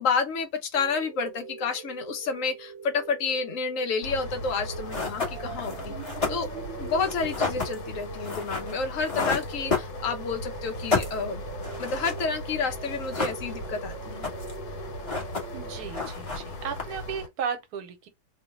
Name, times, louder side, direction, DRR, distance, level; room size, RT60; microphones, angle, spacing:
voice 1, 0.0-5.9 6.3-6.5 6.8-11.4 11.8-14.3, left 5 dB, 65° left, 1.0 m, -30 dB
sound 1, 0.7-15.9, right 5 dB, 60° right, 0.8 m, -42 dB
sound 2, 4.0-17.3, left 1 dB, 85° left, 1.3 m, -39 dB
sound 3, 4.5-4.6 4.9-10.4 10.7-12.5 12.8-13.8 14.0-14.6 14.9-15.7 15.9-17.1, left 4 dB, 25° left, 1.1 m, -31 dB
voice 2, 15.5-18.1, right 7 dB, 85° right, 1.2 m, -35 dB
3.0 x 2.1 x 4.0 m
omnidirectional pair, 1.6 m